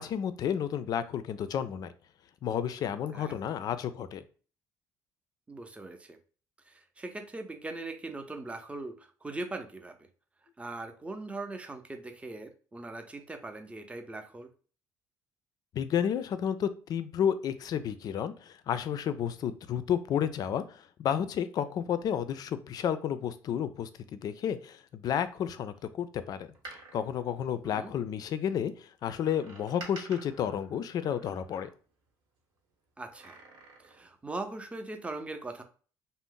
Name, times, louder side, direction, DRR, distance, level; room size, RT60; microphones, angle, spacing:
voice 1, 0.0-1.9 2.4-4.2 15.7-26.5 26.9-31.7, left 9 dB, 55° left, 13 dB, 0.4 m, -31 dB
voice 2, 5.5-6.2 6.7-10.0 10.6-14.5 27.6-27.9 33.0-33.4 33.8-35.6, right 2 dB, 15° right, 6 dB, 0.5 m, -40 dB
Door, 26.4-28.3 29.2-32.1 33.0-34.1 34.4-34.5, right 2 dB, 85° right, 1.0 m, -50 dB
2.6 x 2.0 x 3.6 m, 0.40 s
supercardioid pair, 80°, 8 cm